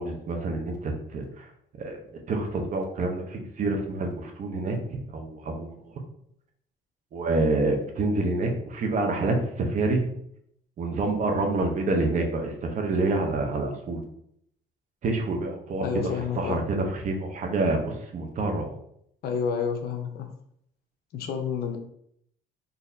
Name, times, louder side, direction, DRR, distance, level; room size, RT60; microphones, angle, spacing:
voice 1, 0.0-1.5 1.8-2.0 2.3-5.8 7.1-10.1 10.8-14.0 15.0-15.8 16.2-18.8, right 2 dB, 50° right, 3 dB, 0.8 m, -27 dB
voice 2, 15.8-16.6 19.2-20.3 21.1-21.8, left 6 dB, 65° left, 5 dB, 0.6 m, -29 dB
4.0 x 2.7 x 2.7 m, 0.72 s
cardioid pair, 110°, 17 cm